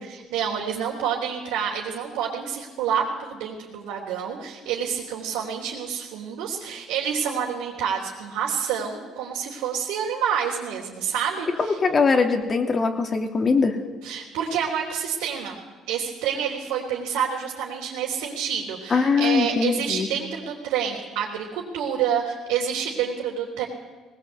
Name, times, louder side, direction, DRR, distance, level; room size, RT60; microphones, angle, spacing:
voice 1, 0.1-11.8 14.0-15.6 15.9-23.7, right 8 dB, 85° right, -4 dB, 3.5 m, -28 dB
voice 2, 11.6-13.8 18.9-20.1, left 4 dB, 40° left, 5 dB, 2.9 m, -21 dB
19.5 x 18.5 x 8.3 m, 1.3 s
supercardioid pair, 75°, 0 cm